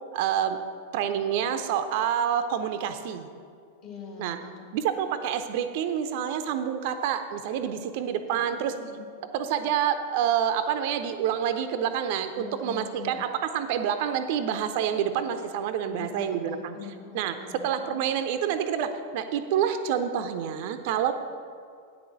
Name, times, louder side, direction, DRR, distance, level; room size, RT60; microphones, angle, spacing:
voice 1, 0.1-0.6 0.9-3.3 4.2-4.4 4.7-8.7 9.3-16.8 17.1-17.4 17.6-21.1, right 9 dB, 50° right, 9 dB, 0.6 m, -27 dB
voice 2, 3.8-4.7 8.3-9.0 12.3-13.2 15.9-18.0, left 6 dB, 40° left, -1 dB, 2.4 m, -43 dB
8.6 x 6.1 x 7.4 m, 2.3 s
figure-of-eight pair, 90°, 0 cm